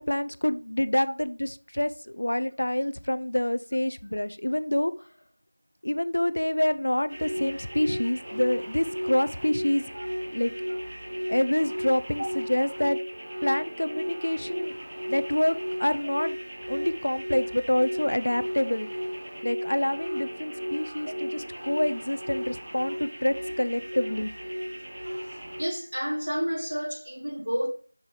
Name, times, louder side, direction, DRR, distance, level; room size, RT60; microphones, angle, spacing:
voice 1, 0.0-4.9 5.8-9.8 10.3-10.5 11.3-13.0 13.4-14.7 15.1-16.4 16.7-18.9 19.4-24.3, left 1 dB, 70° left, 0.5 m, -27 dB
sound 1, 7.1-25.6, equal, 50° right, 1.1 m, -35 dB
voice 2, 25.2-27.7, equal, 85° right, 2.8 m, -31 dB
6.6 x 6.2 x 3.2 m
figure-of-eight pair, 175°, 0 cm